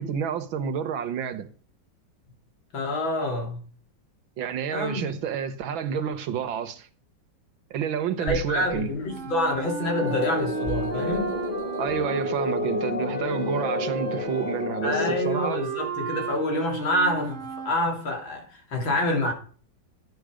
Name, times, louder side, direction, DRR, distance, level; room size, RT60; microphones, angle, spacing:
voice 1, 0.0-1.5 4.4-6.9 7.7-8.9 11.8-15.6, right 7 dB, 85° right, 1.9 m, -29 dB
voice 2, 2.7-3.6 4.7-5.2 8.2-11.4 14.8-17.4 17.7-19.3, left 1 dB, 85° left, 3.6 m, -27 dB
sound 1, 8.3-9.6 10.1-12.2 12.8-12.9, left 1 dB, 15° left, 2.7 m, -38 dB
sound 2, 9.1-17.8, right 4 dB, 45° right, 1.2 m, -33 dB
sound 3, 10.0-15.1, left 4 dB, 30° left, 1.3 m, -31 dB
11.5 x 9.5 x 5.0 m
omnidirectional pair, 2.1 m